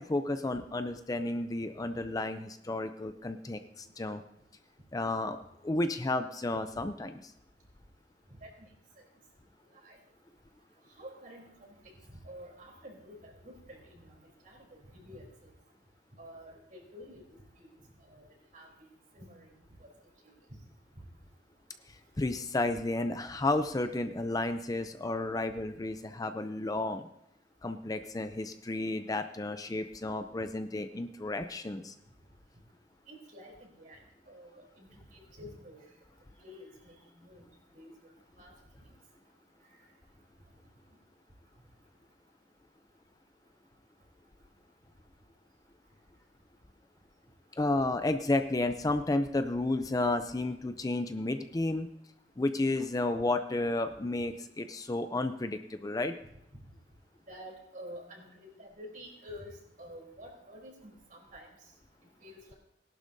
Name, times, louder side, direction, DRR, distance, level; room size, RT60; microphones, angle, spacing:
voice 1, 0.0-4.2 4.9-5.4 5.6-7.2 22.2-27.1 27.6-32.0 47.5-51.9 52.4-56.2, left 2 dB, 20° left, 9 dB, 0.5 m, -32 dB
voice 2, 11.0-11.7 12.1-14.2 14.4-15.5 16.2-17.2 17.6-17.7 18.1-18.2 18.5-18.9 19.1-19.5 19.8-19.9 20.2-20.3 33.1-34.0 34.3-34.9 35.1-35.8 36.4-37.4 37.7-37.9 38.4-38.5 57.3-61.5 62.2-62.5, equal, 50° right, -1 dB, 3.6 m, -49 dB
19.0 x 11.5 x 2.7 m, 0.81 s
head